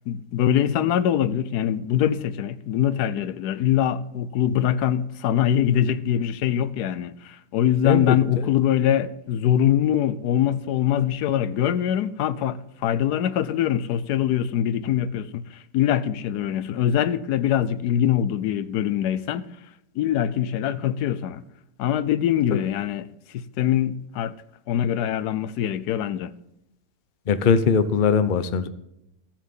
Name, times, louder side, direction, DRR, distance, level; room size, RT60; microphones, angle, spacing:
voice 1, 0.1-19.5 19.9-21.4 21.8-24.3 24.7-26.3, left 10 dB, 90° left, 1.2 m, -23 dB
voice 2, 7.8-8.5 27.3-28.7, left 5 dB, 45° left, 0.7 m, -21 dB
15.0 x 7.3 x 5.4 m
omnidirectional pair, 1.7 m